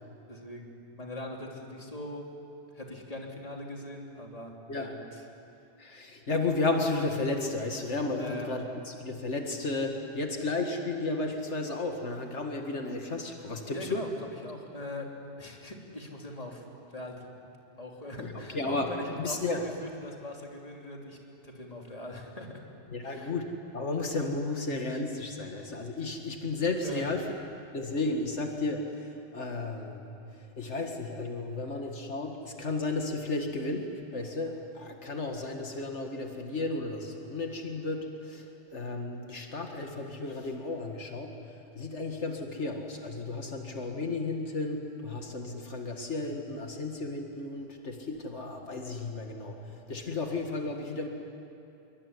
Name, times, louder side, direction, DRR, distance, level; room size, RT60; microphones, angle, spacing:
voice 1, 0.3-2.3 2.7-5.2 8.1-8.5 13.7-14.1 14.4-15.1 15.4-16.6 16.9-17.3 17.8-21.2 21.4-22.6 23.0-23.3 26.8-27.1, left 1 dB, 30° left, 0 dB, 3.3 m, -41 dB
voice 2, 5.8-14.1 18.2-19.6 22.9-27.2 27.7-30.0 30.4-41.4 41.8-49.6 49.9-51.1, left 2 dB, 85° left, 3 dB, 2.3 m, -33 dB
26.5 x 23.5 x 9.8 m, 2.7 s
omnidirectional pair, 1.2 m